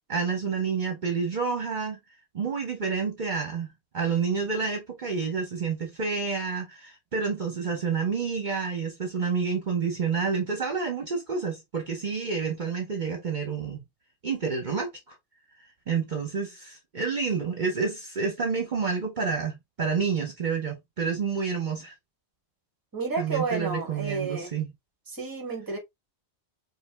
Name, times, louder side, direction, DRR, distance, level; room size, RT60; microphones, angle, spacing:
voice 1, 0.1-2.0 2.3-13.8 14.2-15.1 15.9-21.9 23.2-24.7, right 5 dB, 45° right, 1.0 m, -29 dB
voice 2, 22.9-24.5 25.1-25.8, right 4 dB, 20° right, 1.0 m, -31 dB
5.1 x 2.2 x 3.3 m
omnidirectional pair, 1.1 m